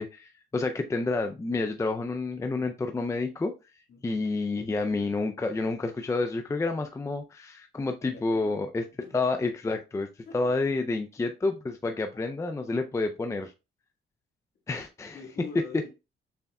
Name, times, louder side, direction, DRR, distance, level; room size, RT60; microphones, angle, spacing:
voice 1, 0.0-3.5 4.0-8.8 9.1-10.1 10.3-13.5 14.7-15.2 15.7-15.8, left 3 dB, 15° left, 0.4 m, -29 dB
voice 2, 3.9-4.2 8.0-8.6 9.0-9.1 10.3-10.7 12.1-12.2 15.1-15.9, left 5 dB, 60° left, 1.7 m, -45 dB
6.8 x 3.4 x 2.3 m
cardioid pair, 90°, 20 cm